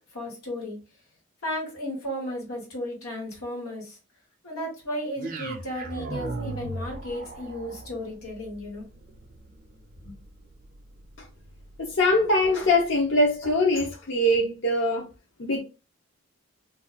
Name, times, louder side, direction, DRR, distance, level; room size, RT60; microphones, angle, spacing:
voice 1, 0.1-0.8 1.4-4.0 4.4-8.9 10.0-10.2, equal, 85° left, 1.4 m, -34 dB
sound 1, 5.2-13.4, right 2 dB, 40° right, 0.4 m, -39 dB
voice 2, 11.8-15.1 15.4-15.6, left 1 dB, 60° left, 0.6 m, -22 dB
2.4 x 2.2 x 3.8 m
head